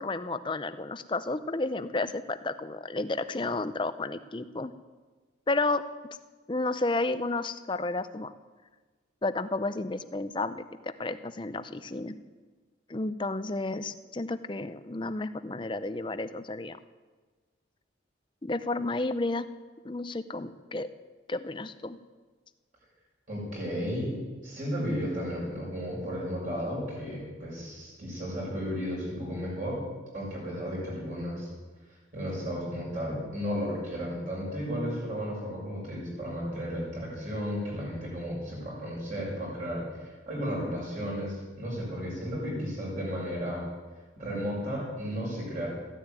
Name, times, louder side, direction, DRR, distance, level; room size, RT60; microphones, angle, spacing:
voice 1, 0.0-4.7 5.5-5.8 6.5-8.3 9.2-12.2 12.9-16.8 18.4-19.5 19.8-20.9 21.3-22.0, left 2 dB, 25° left, 12 dB, 0.5 m, -32 dB
voice 2, 23.3-24.2 24.4-29.8 30.1-31.5 32.1-43.6 44.2-45.7, equal, 40° right, -4 dB, 6.5 m, -34 dB
14.5 x 10.5 x 9.0 m, 1.3 s
head